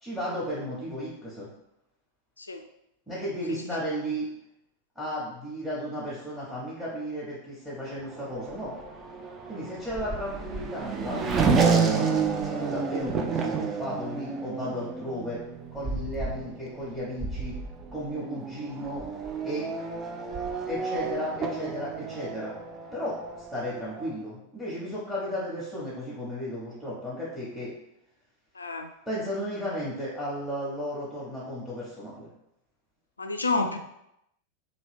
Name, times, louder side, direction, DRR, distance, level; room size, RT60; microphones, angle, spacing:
voice 1, 0.0-1.5 3.1-4.2 5.0-8.7 9.5-12.1 12.5-15.4 15.7-17.5 17.9-19.0 19.4-19.7 20.7-22.6 22.9-27.7 29.1-32.3, equal, 5° right, -8 dB, 1.0 m, -34 dB
Race car auto racing / Accelerating revving vroom, 7.9-24.1, right 5 dB, 25° right, 0.4 m, -30 dB
voice 2, 28.6-28.9 33.2-33.8, left 3 dB, 80° left, 6 dB, 0.3 m, -29 dB
2.9 x 2.6 x 3.2 m, 0.82 s
figure-of-eight pair, 90°, 0 cm